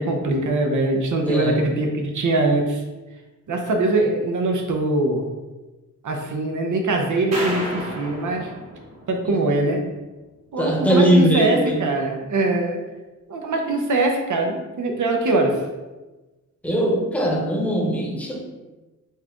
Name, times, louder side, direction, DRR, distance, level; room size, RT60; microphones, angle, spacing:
voice 1, 0.0-2.8 3.5-5.3 6.0-8.5 9.1-9.8 10.5-12.8 13.3-15.6, right 2 dB, 75° right, 2 dB, 0.8 m, -22 dB
voice 2, 1.2-1.6 9.2-9.4 10.6-11.9 16.6-18.4, right 1 dB, 5° left, -2 dB, 1.0 m, -20 dB
sound 1, 7.3-9.6, equal, 60° right, 1.5 m, -32 dB
4.6 x 3.0 x 3.6 m, 1.2 s
wide cardioid pair, 105°, 30 cm